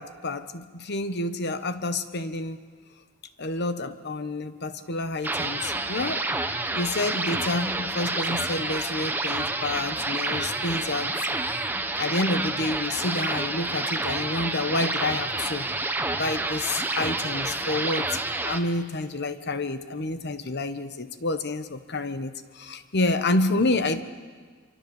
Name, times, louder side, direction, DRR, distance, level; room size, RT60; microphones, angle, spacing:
voice 1, 0.0-2.6 3.4-6.3 6.7-11.1 11.9-15.7 16.2-18.2 18.4-24.0, left 2 dB, 55° left, 11 dB, 1.2 m, -29 dB
sound 1, 5.2-18.6, right 2 dB, 10° right, 1.2 m, -29 dB
25.5 x 24.5 x 7.2 m, 1.5 s
head